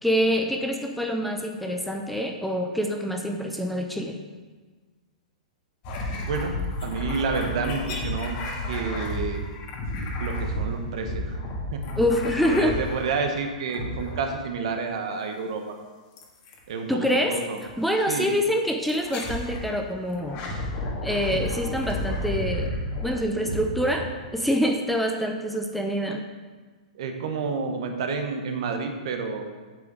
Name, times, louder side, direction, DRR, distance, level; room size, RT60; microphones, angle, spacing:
voice 1, 0.0-4.2 12.0-12.8 16.9-17.4 17.8-20.4 21.0-22.7 23.0-24.1 24.3-26.2, equal, ahead, 2 dB, 0.7 m, -25 dB
sound 1, 5.8-13.3 13.7-14.5 16.2-16.6 17.6-17.7 18.9-19.7 20.1-24.5, left 1 dB, 40° left, 1.8 m, -32 dB
voice 2, 6.2-6.5 6.8-8.4 8.7-9.4 10.2-11.4 11.7-11.8 12.5-15.7 16.7-17.6 18.1-18.3 26.9-29.5, right 5 dB, 55° right, 5 dB, 1.3 m, -29 dB
8.4 x 7.0 x 4.8 m, 1.4 s
figure-of-eight pair, 105°, 4 cm